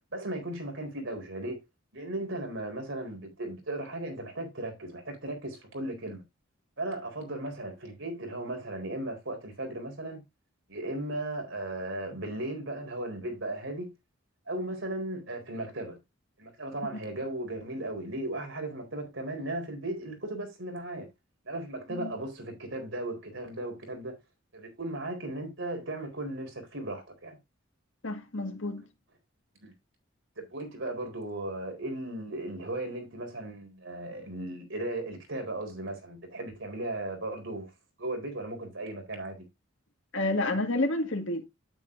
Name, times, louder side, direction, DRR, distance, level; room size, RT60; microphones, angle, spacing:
voice 1, 0.1-1.6 1.9-6.2 6.8-10.2 10.7-13.9 14.5-16.0 16.4-21.1 21.4-24.2 24.5-27.4 29.6-29.7 30.4-37.7 38.0-39.4, right 1 dB, 65° right, 4.1 m, -36 dB
voice 2, 28.0-28.8 40.1-41.5, left 2 dB, 65° left, 1.9 m, -29 dB
9.4 x 9.0 x 2.6 m
head